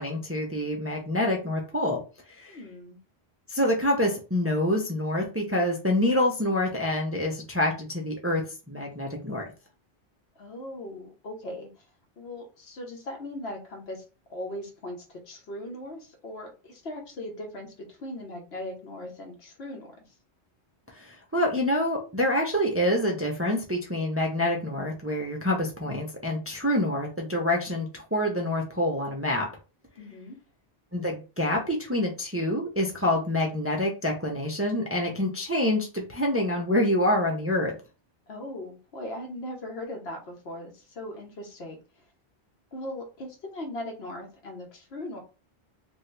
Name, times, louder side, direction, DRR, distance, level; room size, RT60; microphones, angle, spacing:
voice 1, 0.0-2.0 2.4-2.6 3.5-9.4 20.9-29.5 30.9-37.7, left 1 dB, 20° right, 0 dB, 0.5 m, -26 dB
voice 2, 2.5-3.0 10.4-11.8 12.2-14.0 14.3-20.0 30.0-30.4 38.3-41.8 42.7-45.2, left 1 dB, 75° left, 2 dB, 1.2 m, -39 dB
2.8 x 2.6 x 3.2 m, 0.32 s
omnidirectional pair, 1.1 m